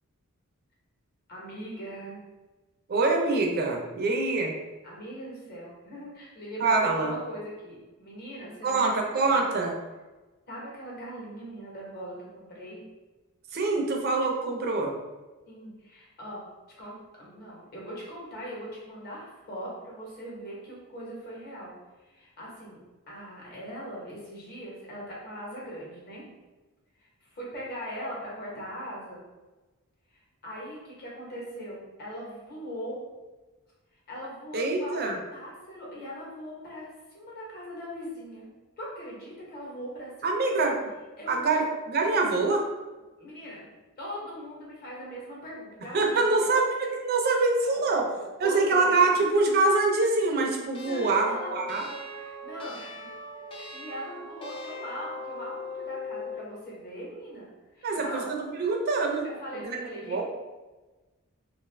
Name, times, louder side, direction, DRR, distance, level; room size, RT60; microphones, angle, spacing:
voice 1, 1.3-2.2 4.8-8.9 9.3-9.4 10.5-12.8 15.5-16.5 16.8-21.7 22.0-26.3 27.0-29.3 30.1-33.0 34.1-35.1 35.3-38.5 38.8-40.7 41.2-41.6 43.2-43.7 44.0-46.5 47.6-49.2 50.9-53.1 53.5-58.3 59.2-60.2, equal, 45° left, -5 dB, 1.0 m, -40 dB
voice 2, 2.9-4.5 6.6-7.1 8.6-9.7 13.5-14.9 34.5-35.2 40.2-40.7 41.3-42.6 45.9-48.0 48.4-51.8 57.8-59.2 59.5-60.2, right 3 dB, 45° right, 1 dB, 0.5 m, -25 dB
sound 1, 50.7-56.5, left 2 dB, 25° left, 0.3 m, -39 dB
2.5 x 2.4 x 3.2 m, 1.2 s
head